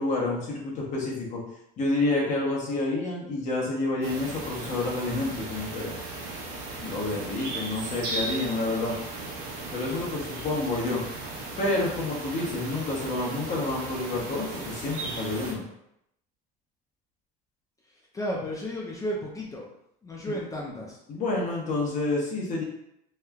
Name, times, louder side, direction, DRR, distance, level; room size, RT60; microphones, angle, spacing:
voice 1, 0.0-1.4 1.8-5.9 6.8-9.0 9.7-11.0 11.6-15.6 20.2-20.3 21.1-22.6, left 2 dB, 40° left, -3 dB, 0.9 m, -29 dB
sound 1, 4.0-15.5, right 2 dB, 70° right, 0.7 m, -36 dB
voice 2, 18.1-19.7 20.0-21.0, equal, 20° left, -2 dB, 0.4 m, -33 dB
3.0 x 2.0 x 2.3 m, 0.79 s
cardioid pair, 120°, 18 cm